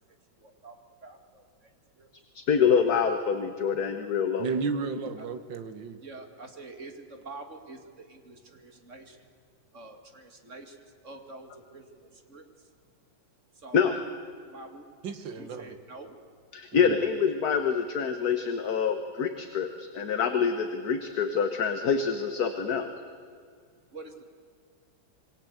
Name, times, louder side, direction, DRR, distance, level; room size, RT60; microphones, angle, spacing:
voice 1, 0.4-1.7 2.0-2.1 5.2-5.3 6.0-9.3 9.7-12.4 13.6-14.0 14.4-14.9 15.4-16.2 19.7-19.9 23.9-24.2, right 3 dB, 40° right, 6 dB, 2.5 m, -47 dB
voice 2, 2.5-4.5 13.7-13.9 16.5-22.9, left 6 dB, 55° left, 7 dB, 1.7 m, -26 dB
voice 3, 4.4-6.0 15.0-15.8 16.7-17.0, right 5 dB, 80° right, 10 dB, 2.2 m, -33 dB
27.0 x 23.0 x 8.0 m, 2.1 s
omnidirectional pair, 2.0 m